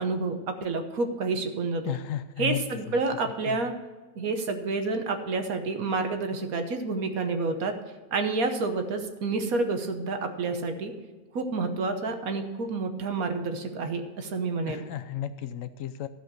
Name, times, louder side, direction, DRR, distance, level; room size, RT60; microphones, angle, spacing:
voice 1, 0.0-1.9 2.4-3.7 4.2-7.7 8.1-10.9 11.3-14.9, right 3 dB, 75° right, 6 dB, 1.5 m, -29 dB
voice 2, 1.8-2.6 2.9-3.0 3.5-3.6 14.7-16.1, left 10 dB, 70° left, 11 dB, 0.9 m, -34 dB
14.5 x 5.0 x 6.4 m, 1.3 s
omnidirectional pair, 1.5 m